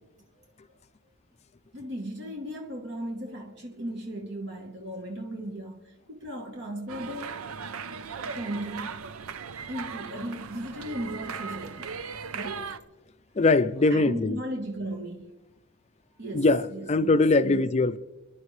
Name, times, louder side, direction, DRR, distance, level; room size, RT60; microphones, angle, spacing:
voice 1, 1.7-7.4 8.1-9.0 9.7-11.9 12.3-12.7 13.9-15.2 16.2-17.7, right 1 dB, 55° right, 1.3 m, -36 dB
sound 1, 6.9-12.8, right 6 dB, 75° right, 0.7 m, -38 dB
voice 2, 13.4-14.4 16.3-18.0, left 3 dB, 30° left, 0.5 m, -22 dB
28.5 x 11.0 x 3.2 m
head